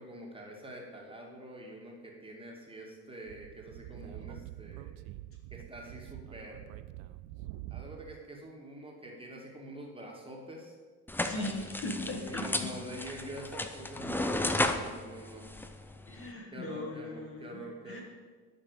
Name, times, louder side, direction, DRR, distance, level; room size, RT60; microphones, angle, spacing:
voice 1, 0.0-4.9 5.5-6.8 7.7-10.8 11.4-11.6 12.2-15.5 16.5-18.0, equal, 10° right, -1 dB, 2.2 m, -45 dB
Speech / Wind, 3.3-8.2, right 15 dB, 50° right, 0.6 m, -46 dB
sound 1, 11.1-16.3, left 2 dB, 5° left, 0.5 m, -34 dB
voice 2, 11.2-12.7 16.1-18.0, left 2 dB, 25° left, 0 dB, 1.5 m, -39 dB
12.0 x 5.9 x 5.0 m, 1.5 s
figure-of-eight pair, 60°, 48 cm